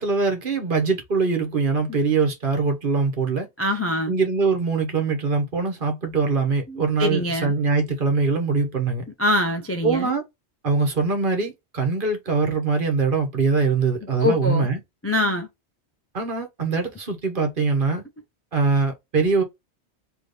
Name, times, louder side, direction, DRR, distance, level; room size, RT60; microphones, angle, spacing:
voice 1, 0.0-3.5 4.1-9.0 9.8-10.2 10.6-14.8 16.1-18.0 18.5-19.4, right 4 dB, 50° right, 1.3 m, -22 dB
voice 2, 3.6-4.1 6.7-7.5 9.2-10.1 14.2-14.7 15.0-15.5, left 1 dB, 20° left, 0.3 m, -24 dB
3.3 x 3.1 x 4.0 m
omnidirectional pair, 1.2 m